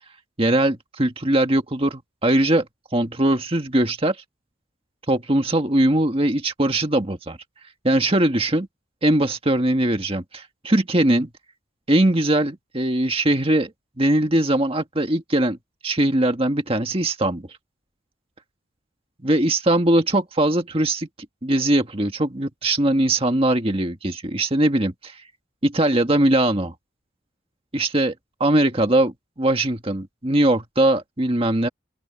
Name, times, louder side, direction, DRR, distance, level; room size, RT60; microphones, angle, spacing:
voice 1, 0.4-2.7 2.9-4.2 5.1-7.4 7.8-8.7 9.0-11.3 11.9-13.7 14.0-15.6 15.8-17.5 19.2-21.1 21.4-25.2 25.6-26.7 27.7-28.1 28.4-29.1 29.4-31.7, right 1 dB, 30° right, 1.8 m, -20 dB
open air
head